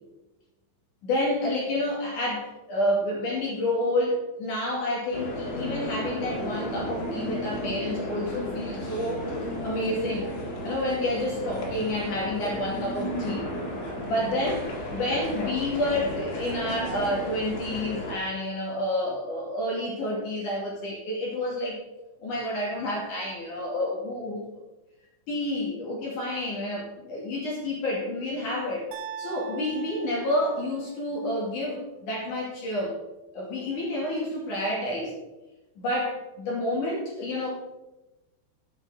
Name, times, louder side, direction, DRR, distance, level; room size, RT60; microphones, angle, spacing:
voice 1, 1.0-9.3 9.6-10.3 10.6-13.5 14.0-21.8 22.2-24.4 25.3-28.9 29.2-33.0 33.3-35.1 35.8-37.5, left 1 dB, 45° left, -3 dB, 3.3 m, -29 dB
sound 1, 5.1-18.1, equal, 75° left, 4.5 m, -33 dB
sound 2, 28.9-31.0, right 7 dB, 70° right, 2.1 m, -41 dB
12.0 x 8.9 x 3.7 m, 1.0 s
omnidirectional pair, 5.6 m